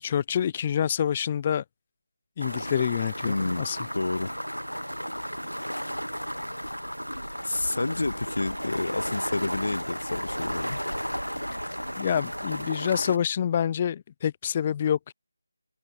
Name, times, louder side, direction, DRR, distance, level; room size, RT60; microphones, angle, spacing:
voice 1, 0.0-1.6 2.4-3.8 12.0-15.1, left 8 dB, 20° left, 0.5 m, -27 dB
sound 1, 2.4-13.2, equal, 90° left, 3.4 m, -34 dB
voice 2, 3.2-3.7 3.9-4.3 7.4-10.8, left 2 dB, 55° left, 1.1 m, -29 dB
figure-of-eight pair, 160°, 0 cm